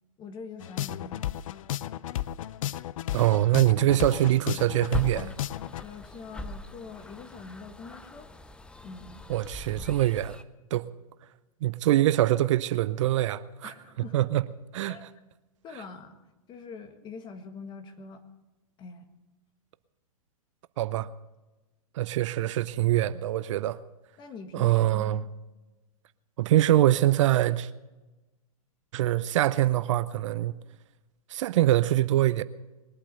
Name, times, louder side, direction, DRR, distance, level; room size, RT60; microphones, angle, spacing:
voice 1, 0.2-1.8 5.8-8.3 8.8-9.2 13.6-14.3 14.9-15.1 15.6-16.2 16.5-18.2 18.8-19.1 24.2-25.3, left 4 dB, 25° left, 1.7 m, -44 dB
sound 1, 0.6-5.8, left 13 dB, 60° left, 0.5 m, -33 dB
voice 2, 3.1-5.3 9.3-10.4 10.7-10.9 11.6-13.7 14.1-14.4 14.7-15.0 20.8-21.1 21.9-23.8 24.5-25.2 26.4-27.7 28.9-30.5 31.3-32.4, right 14 dB, 55° right, 0.6 m, -24 dB
sound 2, 4.9-10.4, left 2 dB, 5° left, 0.5 m, -41 dB
21.5 x 8.7 x 6.7 m
hypercardioid pair, 125°, 19 cm